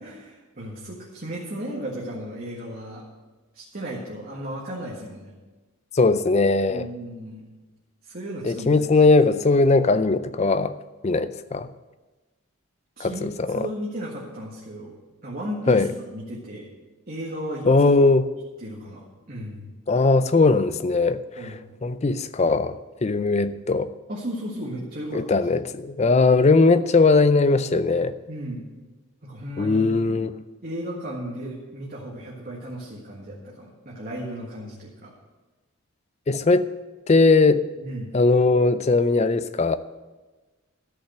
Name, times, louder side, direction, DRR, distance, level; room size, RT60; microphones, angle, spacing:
voice 1, 0.0-3.1 3.5-5.3 6.7-7.4 8.0-8.8 13.0-15.0 15.2-16.7 17.1-17.9 18.6-19.7 21.4-21.6 24.1-25.4 28.3-28.7 29.2-30.0 30.6-35.1 37.8-38.1, equal, 40° right, -5 dB, 1.7 m, -35 dB
voice 2, 5.9-6.9 8.4-10.8 11.0-11.7 13.0-13.7 15.7-15.9 17.7-18.3 19.9-21.2 21.8-22.8 23.0-23.9 25.1-28.1 29.6-30.3 36.3-36.7 37.1-37.6 38.1-39.8, left 3 dB, 30° left, 13 dB, 0.4 m, -19 dB
13.5 x 5.7 x 7.7 m, 1.2 s
head